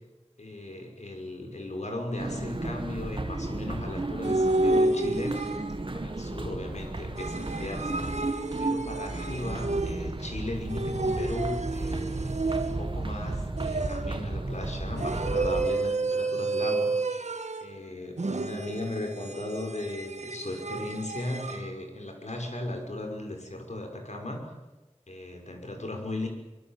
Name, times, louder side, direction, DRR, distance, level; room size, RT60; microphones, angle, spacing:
voice 1, 0.4-5.4 5.9-17.3 17.6-24.4 25.1-26.3, left 1 dB, 80° left, 3 dB, 5.9 m, -37 dB
sound 1, 2.2-15.7, right 2 dB, 50° right, 2.0 m, -34 dB
sound 2, 4.2-6.0 7.2-10.2 10.7-13.0 13.6-14.3 15.0-17.8 18.2-21.7, right 2 dB, 85° right, 1.5 m, -30 dB
24.5 x 24.0 x 7.6 m, 1.1 s
wide cardioid pair, 55°, 12 cm